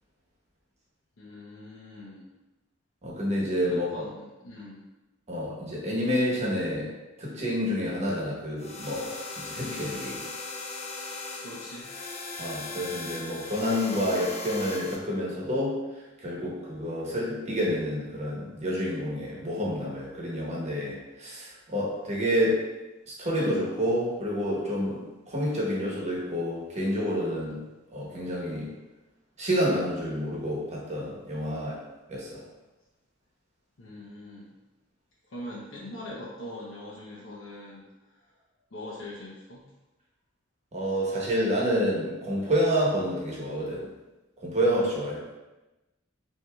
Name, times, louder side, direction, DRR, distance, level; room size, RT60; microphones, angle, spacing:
voice 1, 1.2-2.3 3.7-4.8 11.4-11.9 33.8-34.5 35.3-38.3 38.7-39.6, left 1 dB, 70° left, -7 dB, 0.8 m, -42 dB
voice 2, 3.0-4.0 5.3-6.9 7.2-10.2 12.4-15.8 16.2-22.6 23.1-25.0 25.3-27.6 27.9-28.7 29.4-31.8 32.1-32.4 40.7-43.9 44.4-45.2, equal, 35° right, -3 dB, 1.0 m, -28 dB
sound 1, 8.6-15.0, left 3 dB, 30° left, 0.5 m, -38 dB
5.9 x 2.8 x 2.3 m, 1.1 s
head